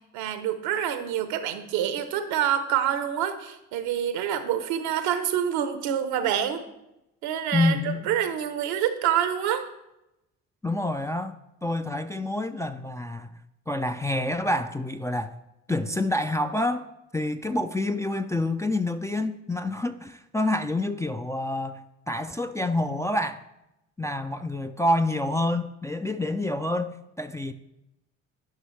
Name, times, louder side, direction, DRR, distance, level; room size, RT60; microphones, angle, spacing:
voice 1, 0.1-6.6 7.2-7.8 8.1-9.7, right 9 dB, 75° right, 0.9 m, -27 dB
voice 2, 7.5-8.1 10.6-13.3 13.7-15.4 15.7-16.9 17.1-23.4 24.0-27.5, left 1 dB, 10° left, 0.4 m, -27 dB
11.0 x 5.4 x 3.2 m
hypercardioid pair, 50°, 38 cm